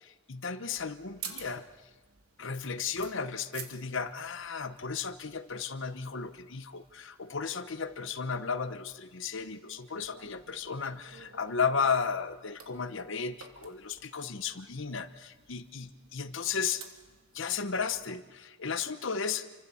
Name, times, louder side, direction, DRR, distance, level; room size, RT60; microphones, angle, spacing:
voice 1, 0.0-1.6 2.4-16.8 17.3-19.5, left 5 dB, 60° left, 11 dB, 1.0 m, -34 dB
sound 1, 0.8-18.2, right 7 dB, 90° right, 3.1 m, -52 dB
29.0 x 25.0 x 7.1 m, 1.3 s
head